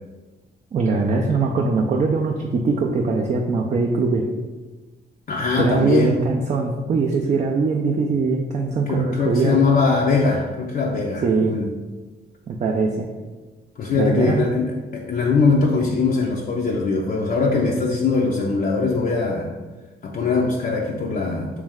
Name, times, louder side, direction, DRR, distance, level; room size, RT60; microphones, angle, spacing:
voice 1, 0.7-4.2 5.6-9.6 11.2-11.6 12.5-13.1 13.9-14.5, right 4 dB, 35° right, 0 dB, 0.4 m, -21 dB
voice 2, 5.3-6.2 8.9-11.7 13.8-19.5 20.0-21.6, left 4 dB, 45° left, -2 dB, 0.5 m, -21 dB
3.2 x 3.1 x 3.5 m, 1.3 s
cardioid pair, 90°, 20 cm